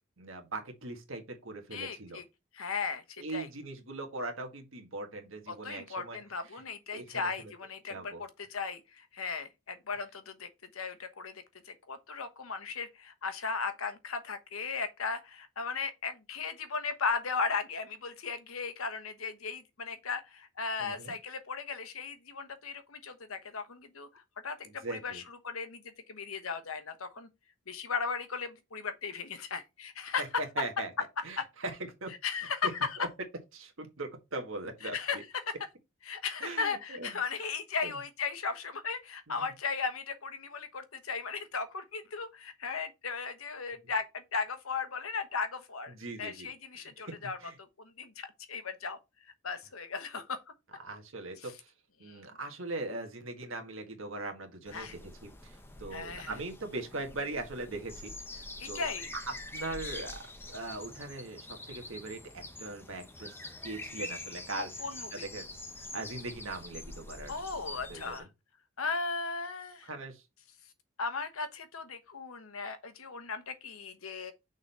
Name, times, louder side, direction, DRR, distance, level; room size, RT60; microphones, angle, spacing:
voice 1, 0.2-2.2 3.2-6.2 6.5-6.6 6.9-7.3 7.9-8.2 20.8-21.1 24.8-25.2 30.2-30.9 31.2-32.1 32.6-32.7 33.0-33.1 33.5-35.2 36.4-37.2 37.8-38.0 39.3-39.5 45.9-46.5 46.8-47.5 50.8-51.7 52.0-58.9 59.3-60.2 60.5-64.7 65.1-65.5 65.8-67.3 67.9-68.2 69.8-70.2, right 2 dB, 70° right, 1.7 m, -40 dB
voice 2, 1.7-2.2 2.5-3.5 5.5-25.8 26.1-27.3 27.7-30.2 31.4-31.5 32.2-33.0 34.8-35.2 35.5-35.6 36.0-47.4 47.8-50.4 51.4-51.5 52.0-52.2 54.7-54.9 55.9-56.4 58.6-59.1 64.8-65.2 67.3-68.3 68.8-69.9 71.0-74.3, left 5 dB, 85° left, 1.1 m, -37 dB
sound 1, 54.7-68.2, left 2 dB, 10° left, 0.6 m, -45 dB
6.2 x 4.0 x 4.3 m
head